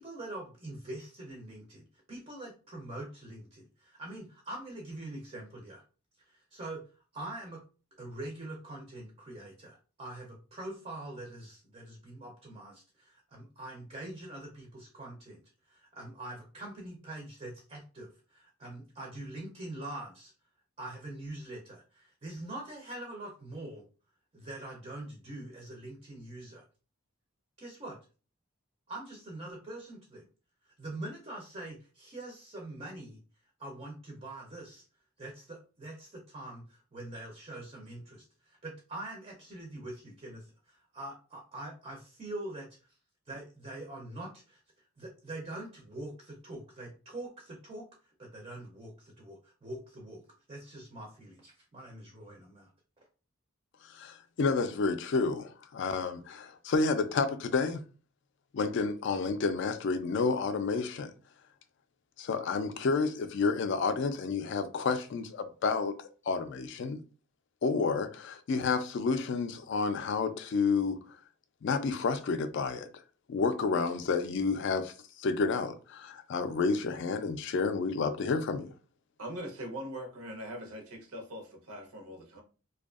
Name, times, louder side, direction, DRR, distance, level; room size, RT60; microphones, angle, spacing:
voice 1, 0.0-5.8 6.2-7.6 8.0-20.3 20.8-23.9 24.3-26.7 27.6-28.0 28.9-30.3 30.6-33.2 33.6-34.9 35.2-43.0 43.3-50.2 50.5-52.7, right 1 dB, 30° right, 0.4 m, -44 dB
voice 2, 53.8-57.8 58.5-61.1 62.2-67.0 67.6-71.0 71.6-72.9 73.3-74.9 75.2-78.7, left 4 dB, 55° left, 0.3 m, -30 dB
voice 3, 79.2-82.4, equal, 85° right, 0.7 m, -41 dB
2.6 x 2.3 x 2.3 m
head